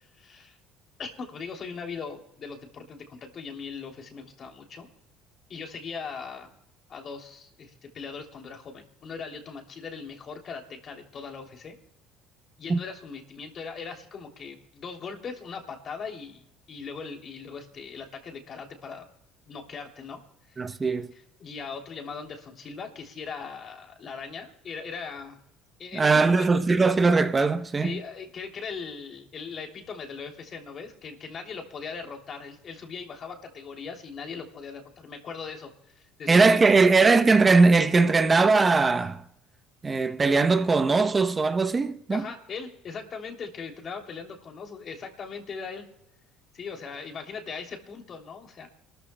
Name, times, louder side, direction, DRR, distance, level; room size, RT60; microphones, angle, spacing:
voice 1, 0.1-0.6 1.0-4.9 5.5-6.5 6.9-11.7 12.6-19.1 19.5-20.2 20.5-25.4 25.8-26.6 27.8-37.1 42.1-45.9 46.5-48.7, left 5 dB, 45° left, 2.9 m, -39 dB
voice 2, 20.6-21.1 25.9-28.0 36.3-39.2 39.8-42.2, right 4 dB, 25° right, 0.8 m, -20 dB
29.5 x 13.5 x 2.2 m
supercardioid pair, 100°, 0 cm